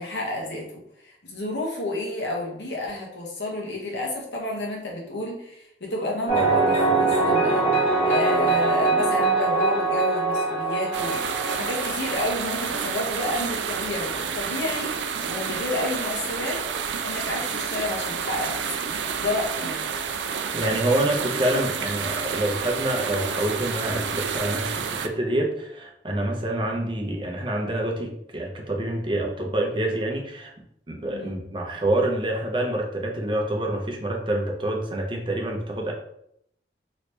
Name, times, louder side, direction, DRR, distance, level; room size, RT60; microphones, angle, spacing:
voice 1, 0.0-11.2 11.5-16.6 17.0-18.6 19.2-20.0 31.1-31.4, left 2 dB, 80° left, -1 dB, 1.0 m, -30 dB
sound 1, 6.3-13.8, right 3 dB, 40° left, 1.0 m, -23 dB
sound 2, 10.9-25.1, right 6 dB, 85° right, 0.3 m, -29 dB
voice 2, 20.5-30.5 30.9-35.9, right 1 dB, 25° right, 1 dB, 0.6 m, -27 dB
3.0 x 2.8 x 3.2 m, 0.73 s
head